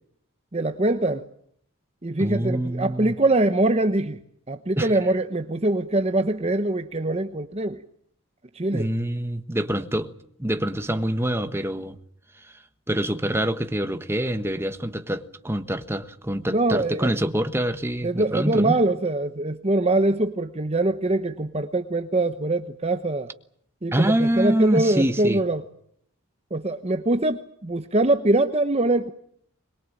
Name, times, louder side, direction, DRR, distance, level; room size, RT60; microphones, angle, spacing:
voice 1, 0.5-1.3 2.0-4.2 4.5-7.8 8.5-8.9 16.5-17.1 18.0-23.3 23.8-25.6 26.5-29.1, right 2 dB, 30° right, 1.0 m, -23 dB
voice 2, 2.2-3.1 4.8-4.9 8.7-10.1 10.4-12.0 12.4-12.6 12.9-18.8 23.9-25.4, right 1 dB, 10° right, 1.3 m, -25 dB
22.5 x 22.5 x 8.8 m
head